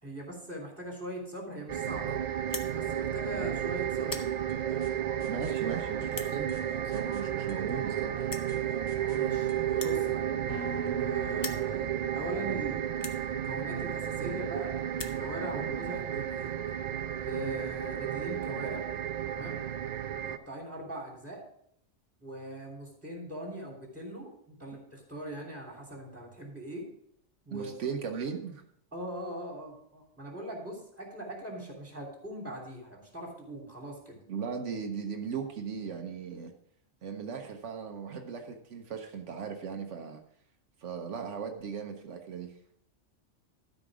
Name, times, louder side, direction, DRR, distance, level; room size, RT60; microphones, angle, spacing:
voice 1, 0.0-2.2 2.7-4.4 9.1-9.5 9.8-10.2 11.0-16.5 17.2-18.8 19.3-19.6 20.2-21.4 22.2-26.8 27.4-27.7 28.9-34.2, right 1 dB, 10° right, -2 dB, 3.0 m, -41 dB
sound 1, 1.7-20.4, right 10 dB, 65° right, 0.4 m, -32 dB
sound 2, 2.5-2.7 3.4-3.6 3.9-4.3 5.1-5.2 6.1-6.3 7.4-7.5 7.7-7.8 8.3-8.5 9.7-11.0 11.3-11.7 12.4-12.5 13.0-13.2 14.1-14.2 14.4-14.5 14.8-15.2, left 3 dB, 25° left, 0.6 m, -40 dB
sound 3, 4.5-12.3, right 1 dB, 65° left, 2.1 m, -46 dB
voice 2, 5.3-6.5 6.8-8.3 11.7-11.9 27.5-28.6 34.3-36.5 37.0-40.2 40.8-42.5, right 6 dB, 80° right, 4 dB, 1.2 m, -37 dB
12.5 x 5.2 x 4.9 m, 0.70 s
omnidirectional pair, 1.2 m